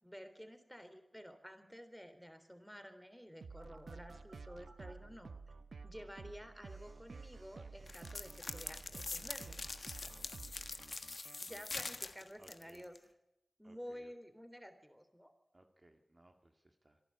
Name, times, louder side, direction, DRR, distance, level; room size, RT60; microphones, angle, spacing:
voice 1, 0.0-5.4 5.8-9.6 11.4-12.9 13.6-15.3, equal, ahead, 9 dB, 3.6 m, -52 dB
sound 1, 3.4-11.8, right 4 dB, 90° right, 0.8 m, -52 dB
Telephone, 3.6-4.9 6.6-11.0, right 2 dB, 75° right, 5.5 m, -64 dB
sound 2, 7.9-13.0, left 3 dB, 65° left, 1.4 m, -44 dB
voice 2, 9.4-10.4 11.8-12.0 12.4-13.1 13.6-14.1 15.5-17.0, right 1 dB, 40° right, 5 dB, 2.0 m, -64 dB
25.5 x 11.5 x 8.7 m, 0.91 s
cardioid pair, 40°, 0 cm